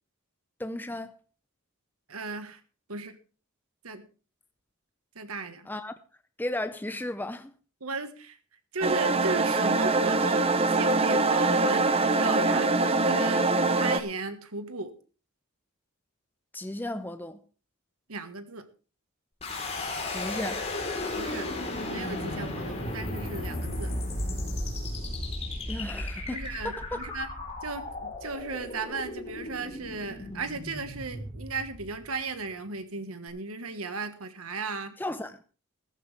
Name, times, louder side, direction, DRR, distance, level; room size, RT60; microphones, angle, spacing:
voice 1, 0.6-1.2 5.7-5.9 6.4-7.5 16.5-17.4 20.1-20.7 25.7-27.0 35.0-35.4, left 1 dB, 10° left, 0.5 m, -35 dB
voice 2, 2.1-2.6 2.9-3.1 3.8-4.1 5.1-5.7 7.8-8.4 8.7-14.9 18.1-18.7 21.2-21.5 21.8-23.9 26.3-27.3 27.6-35.0, right 3 dB, 85° right, 1.6 m, -36 dB
sound 1, 8.8-14.0, right 3 dB, 30° right, 0.9 m, -24 dB
sound 2, 19.4-32.3, left 1 dB, 30° left, 4.0 m, -35 dB
14.5 x 14.0 x 3.5 m
head